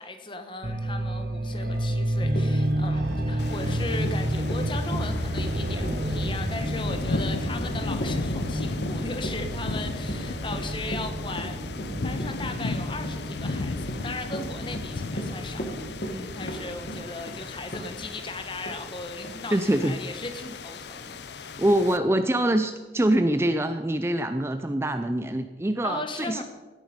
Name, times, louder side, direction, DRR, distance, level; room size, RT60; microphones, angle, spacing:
voice 1, 0.0-11.7 12.0-21.5 25.8-26.4, left 2 dB, 30° left, 7 dB, 1.3 m, -37 dB
sound 1, 0.6-17.0, right 1 dB, 55° right, 1.6 m, -30 dB
Run, 1.9-2.0 2.3-18.3 18.7-18.8 19.2-19.4, right 1 dB, 55° left, 1.8 m, -38 dB
sound 2, 3.4-22.0, left 3 dB, 75° left, 0.6 m, -36 dB
voice 2, 19.5-20.0 21.6-26.4, right 1 dB, 15° right, 9 dB, 0.5 m, -24 dB
17.0 x 9.1 x 5.2 m, 1.3 s
head